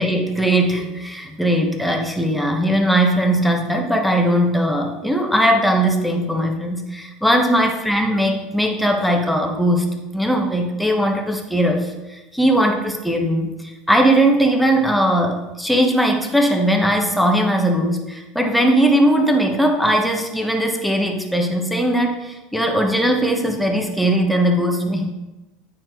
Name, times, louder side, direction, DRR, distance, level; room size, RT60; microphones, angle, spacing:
voice 1, 0.0-9.9 10.1-25.1, right 1 dB, ahead, 2 dB, 1.3 m, -19 dB
9.0 x 4.3 x 4.7 m, 1.1 s
hypercardioid pair, 90°, 0 cm